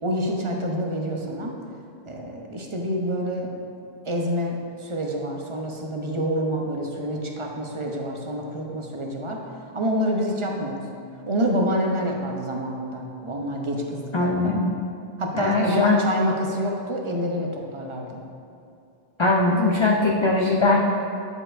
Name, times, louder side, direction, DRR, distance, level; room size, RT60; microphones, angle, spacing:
voice 1, 0.0-1.5 2.0-3.5 4.0-10.9 11.3-14.5 15.2-18.2, equal, 35° right, 0 dB, 0.6 m, -27 dB
voice 2, 14.1-14.7 15.3-16.0 19.2-20.8, left 3 dB, 40° left, -2 dB, 0.4 m, -20 dB
9.7 x 4.8 x 2.5 m, 2.6 s
omnidirectional pair, 1.0 m